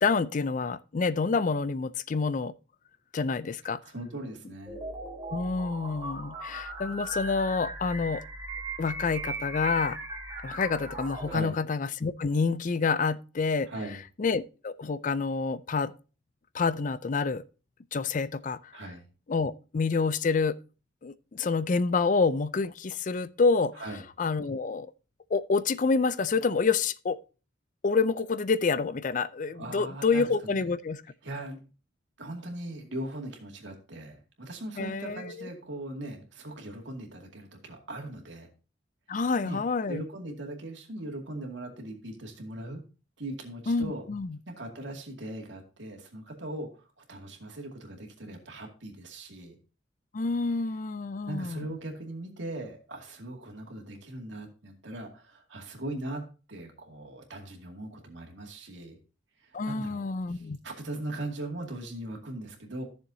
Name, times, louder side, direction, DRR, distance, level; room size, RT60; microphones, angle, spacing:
voice 1, 0.0-2.5 3.1-3.8 5.3-8.2 8.8-10.0 10.4-13.7 14.2-15.9 16.5-17.4 17.9-18.7 19.3-20.6 21.0-23.7 24.2-24.9 25.3-27.2 27.8-31.0 34.8-35.5 39.1-40.0 43.7-44.4 50.1-51.7 59.5-60.6, left 4 dB, 45° left, 0.4 m, -28 dB
voice 2, 3.8-4.8 11.3-11.6 13.7-14.0 18.7-19.1 23.7-24.0 29.5-30.7 31.2-31.6 32.2-38.5 39.1-39.6 39.9-42.8 43.2-44.1 44.5-49.6 51.3-59.0 59.4-60.0 60.3-62.8, right 1 dB, 80° right, 2.3 m, -39 dB
sound 1, 4.7-11.4, right 2 dB, 20° right, 3.7 m, -38 dB
13.5 x 7.0 x 2.7 m
head